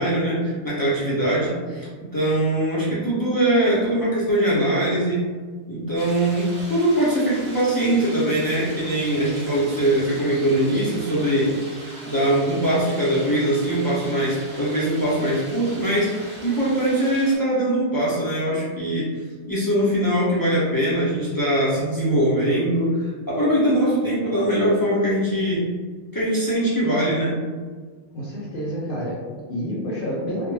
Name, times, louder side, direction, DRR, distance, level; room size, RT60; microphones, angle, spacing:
voice 1, 0.0-5.3 5.7-11.5 12.0-19.1 19.5-25.6 26.1-27.4, right 1 dB, 40° left, -9 dB, 0.3 m, -22 dB
sound 1, 6.0-17.4, right 1 dB, 70° right, 0.9 m, -41 dB
voice 2, 28.1-30.5, equal, 60° left, -6 dB, 0.7 m, -29 dB
2.1 x 2.0 x 3.1 m, 1.5 s
omnidirectional pair, 1.1 m